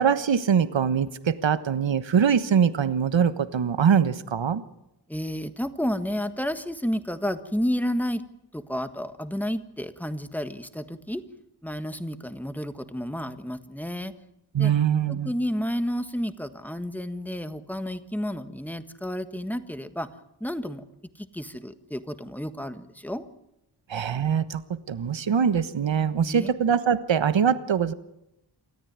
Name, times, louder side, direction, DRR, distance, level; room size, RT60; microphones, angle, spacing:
voice 1, 0.0-4.6 14.5-15.3 23.9-27.9, right 7 dB, 85° right, 13 dB, 1.3 m, -23 dB
voice 2, 5.1-8.2 8.5-11.2 11.6-14.1 14.6-14.7 15.1-20.1 20.4-20.8 21.2-23.3 26.2-26.5, equal, 5° left, 10 dB, 1.5 m, -31 dB
27.5 x 14.0 x 9.5 m, 0.87 s
wide cardioid pair, 115°, 44 cm